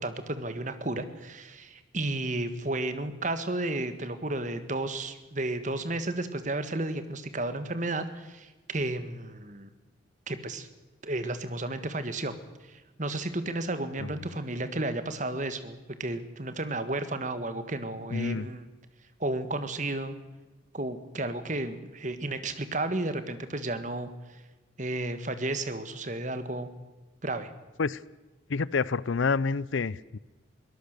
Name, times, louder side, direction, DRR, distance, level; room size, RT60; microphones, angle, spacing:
voice 1, 0.0-9.7 10.3-10.7 11.0-12.3 12.6-18.6 19.2-20.1 20.7-24.4 24.8-26.7 27.2-27.5, right 2 dB, 40° right, 11 dB, 1.6 m, -33 dB
voice 2, 18.1-18.5 27.8-28.0 28.5-30.2, left 4 dB, 75° left, 22 dB, 0.6 m, -28 dB
22.5 x 18.5 x 6.7 m, 1.2 s
head